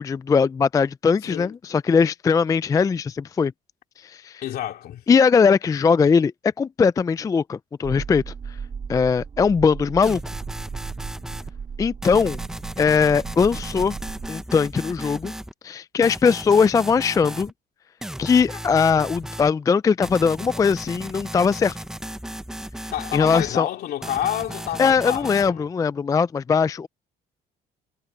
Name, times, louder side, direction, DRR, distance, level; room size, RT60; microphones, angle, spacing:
voice 1, 0.0-3.5 4.0-4.4 5.1-6.3 6.6-8.3 8.9-10.2 11.8-12.4 12.8-14.0 14.3-15.3 15.6-17.5 18.2-21.8 23.1-23.7 24.8-26.9, left 5 dB, 20° left, 0.3 m, -20 dB
voice 2, 1.2-1.5 4.4-5.0 22.9-25.7, left 12 dB, 65° left, 2.5 m, -29 dB
sound 1, 7.8-14.3, right 6 dB, 35° right, 2.0 m, -36 dB
sound 2, 10.0-11.5 12.0-15.5 16.0-17.5 18.0-19.5 20.0-23.5 24.0-25.5, right 1 dB, 5° right, 0.8 m, -35 dB
cardioid pair, 110°, 17 cm